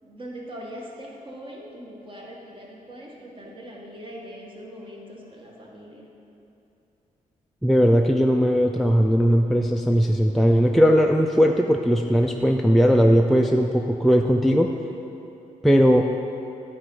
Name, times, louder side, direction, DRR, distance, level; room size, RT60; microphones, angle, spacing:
voice 1, 0.0-6.1, equal, 35° right, -3 dB, 1.6 m, -41 dB
voice 2, 7.6-14.7 15.6-16.1, equal, ahead, 2 dB, 0.3 m, -18 dB
9.7 x 4.4 x 5.4 m, 2.9 s
cardioid pair, 85°, 14 cm